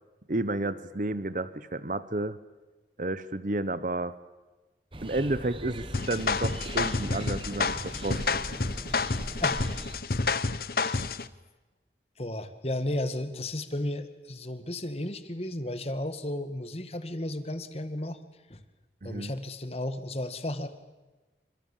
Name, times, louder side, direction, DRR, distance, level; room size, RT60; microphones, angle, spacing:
voice 1, 0.3-2.4 3.0-4.1 5.0-8.4 19.0-19.3, right 2 dB, 45° right, 15 dB, 1.0 m, -31 dB
sound 1, 4.9-10.0, right 1 dB, 30° right, 1.6 m, -39 dB
sound 2, 5.9-11.3, left 4 dB, 55° left, 1.0 m, -29 dB
voice 2, 10.1-11.1 12.2-18.2 18.5-18.6 19.0-20.7, left 1 dB, 35° left, 10 dB, 2.0 m, -34 dB
29.0 x 26.0 x 7.4 m, 1.2 s
head